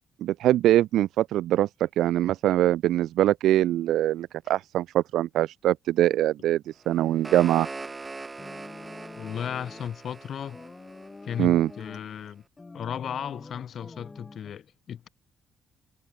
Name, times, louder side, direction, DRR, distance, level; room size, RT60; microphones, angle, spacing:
voice 1, 0.2-7.7 11.4-11.7, right 13 dB, 80° right, 0.4 m, -23 dB
sound 1, 6.8-11.9, right 3 dB, 25° right, 1.1 m, -42 dB
sound 2, 8.4-9.9 10.5-12.1 12.6-14.5, left 3 dB, 25° left, 4.7 m, -46 dB
voice 2, 9.2-10.6 11.2-12.4 12.7-15.1, left 9 dB, 60° left, 3.0 m, -35 dB
cardioid pair, 90°, 0 cm